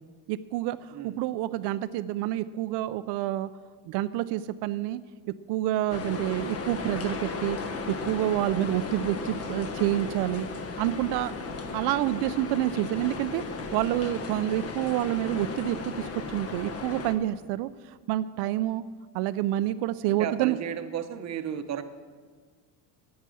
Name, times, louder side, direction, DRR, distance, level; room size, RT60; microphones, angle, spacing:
voice 1, 0.3-3.5 3.9-5.0 5.5-7.6 7.9-10.5 10.8-11.3 11.7-13.4 13.7-18.8 19.1-20.6, right 14 dB, 75° right, 13 dB, 0.5 m, -28 dB
sound 1, 5.9-17.2, left 4 dB, 35° left, 1.0 m, -35 dB
voice 2, 20.1-21.8, right 9 dB, 40° right, 9 dB, 0.9 m, -34 dB
11.0 x 9.7 x 7.6 m, 1.5 s
cardioid pair, 160°, 41 cm